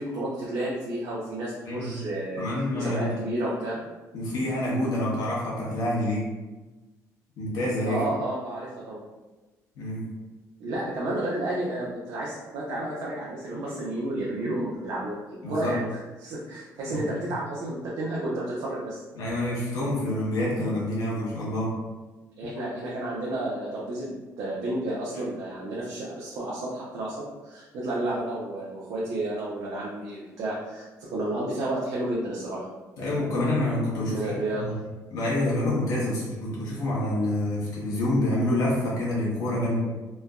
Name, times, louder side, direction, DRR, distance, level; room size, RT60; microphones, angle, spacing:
voice 1, 0.0-2.4 2.7-3.7 7.9-9.0 10.6-15.2 15.5-15.9 16.2-19.0 22.4-27.2 27.4-32.6 34.1-34.7, right 1 dB, 80° right, -6 dB, 0.6 m, -31 dB
voice 2, 1.7-2.0 2.4-3.2 4.1-6.3 7.4-8.0 9.7-10.0 15.4-15.8 16.9-17.0 19.2-21.8 33.0-34.7 35.1-39.8, left 1 dB, 70° left, -6 dB, 1.0 m, -27 dB
3.2 x 2.1 x 2.3 m, 1.2 s
cardioid pair, 145°, 6 cm